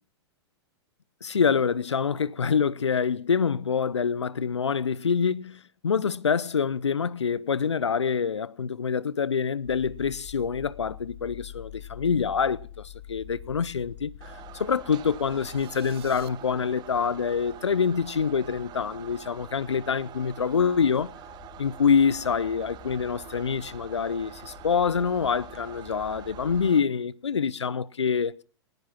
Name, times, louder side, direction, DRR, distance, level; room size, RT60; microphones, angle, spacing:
voice 1, 1.2-14.1 14.5-21.1 21.6-28.4, left 6 dB, 90° left, 0.7 m, -26 dB
sound 1, 9.6-26.7, left 9 dB, 45° left, 6.0 m, -47 dB
sound 2, 14.2-26.8, right 12 dB, 30° right, 1.1 m, -46 dB
sound 3, 15.1-16.3, right 12 dB, 65° right, 1.3 m, -51 dB
19.0 x 12.0 x 5.7 m
hypercardioid pair, 110°, 14 cm